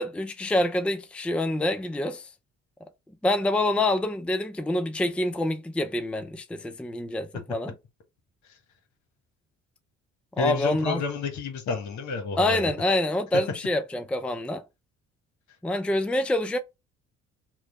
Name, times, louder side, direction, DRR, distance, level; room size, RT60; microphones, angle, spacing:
voice 1, 0.0-2.3 3.2-7.7 10.4-11.0 12.4-14.6 15.6-16.6, left 1 dB, 5° left, 0.5 m, -26 dB
voice 2, 10.4-12.7, left 4 dB, 60° left, 1.1 m, -30 dB
3.1 x 2.2 x 4.0 m
hypercardioid pair, 55°, 32 cm